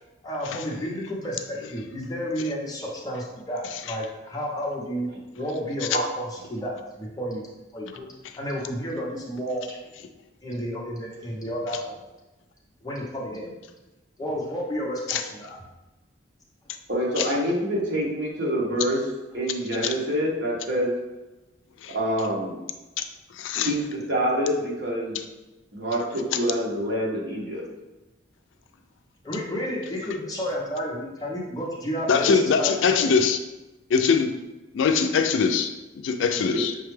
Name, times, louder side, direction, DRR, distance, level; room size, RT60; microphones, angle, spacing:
voice 1, 0.2-7.5 7.7-8.1 8.4-9.6 10.4-12.0 12.8-13.5 14.2-15.6 29.2-32.7 33.0-33.1, equal, 20° left, -3 dB, 0.7 m, -31 dB
voice 2, 16.9-19.0 19.3-20.9 21.9-22.6 23.6-25.2 25.7-27.6, equal, 60° right, -4 dB, 1.1 m, -26 dB
voice 3, 23.4-23.7 32.1-33.4 33.9-34.3 34.7-36.7, left 5 dB, 75° left, 7 dB, 0.3 m, -22 dB
5.8 x 2.3 x 3.2 m, 1.1 s
head